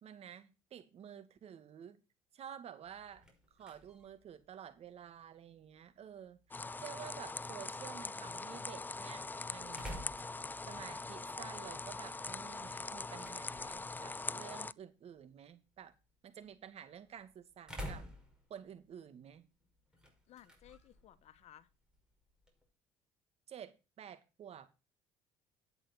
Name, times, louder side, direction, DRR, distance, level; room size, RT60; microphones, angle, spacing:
voice 1, 0.0-2.0 2.3-3.2 3.5-6.4 6.8-9.2 9.5-10.1 10.7-15.9 16.2-18.0 18.5-19.5 23.5-24.7, right 9 dB, 55° right, 2.3 m, -51 dB
sound 1, 2.8-22.7, equal, 5° right, 5.7 m, -54 dB
sound 2, 6.5-14.7, left 3 dB, 15° left, 0.4 m, -42 dB
voice 2, 20.3-21.7, left 12 dB, 60° left, 1.3 m, -58 dB
10.5 x 8.8 x 4.5 m
supercardioid pair, 80°, 13 cm